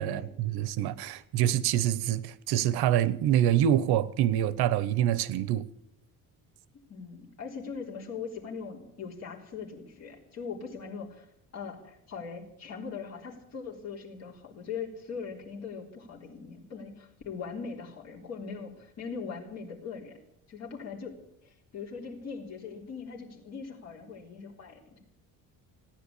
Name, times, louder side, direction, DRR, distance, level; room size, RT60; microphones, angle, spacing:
voice 1, 0.0-5.7, right 11 dB, 80° right, 0.9 m, -26 dB
voice 2, 6.9-11.3 11.5-20.1 20.5-25.0, left 5 dB, 40° left, 3.7 m, -41 dB
16.5 x 10.0 x 8.4 m
cardioid pair, 170°, 38 cm